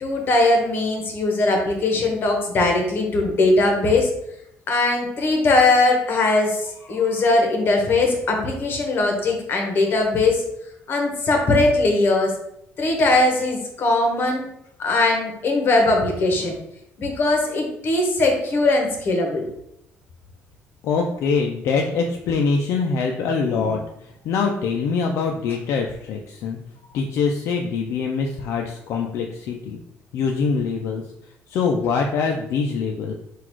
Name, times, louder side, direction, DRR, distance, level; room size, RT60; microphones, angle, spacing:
voice 1, 0.0-4.1 4.7-10.4 10.9-12.4 12.8-14.5 14.8-16.5 17.0-19.4, left 2 dB, 45° left, 2 dB, 1.1 m, -20 dB
voice 2, 20.8-26.6 26.9-29.8 30.1-31.0 31.5-33.1, left 5 dB, 70° left, 2 dB, 0.5 m, -24 dB
3.9 x 2.5 x 4.5 m, 0.78 s
cardioid pair, 130°, 5 cm